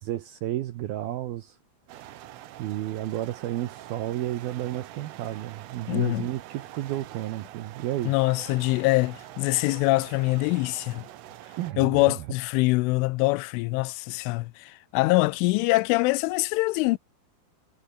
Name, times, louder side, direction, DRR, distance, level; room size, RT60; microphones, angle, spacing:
voice 1, 0.0-1.6 1.9-2.1 2.6-8.1 11.6-12.0, right 14 dB, 75° right, 2.3 m, -32 dB
sound 1, 1.9-11.7, right 14 dB, 90° right, 4.2 m, -45 dB
voice 2, 5.9-6.3 8.1-11.0 11.8-17.0, left 22 dB, 85° left, 3.1 m, -24 dB
omnidirectional pair, 5.6 m